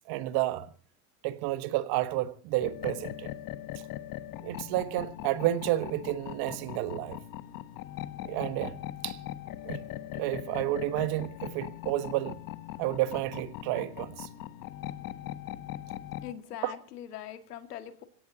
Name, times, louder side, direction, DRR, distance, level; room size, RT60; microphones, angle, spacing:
voice 1, 0.1-0.7 1.2-3.3 4.4-7.2 8.2-8.8 9.0-9.2 9.6-9.8 10.1-12.4 12.8-14.3 16.6-16.7, right 15 dB, 55° right, 1.4 m, -30 dB
sound 1, 2.6-16.3, left 13 dB, 45° left, 1.2 m, -40 dB
voice 2, 16.2-18.0, left 11 dB, 85° left, 2.1 m, -42 dB
26.5 x 16.5 x 2.9 m
hypercardioid pair, 105°, 46 cm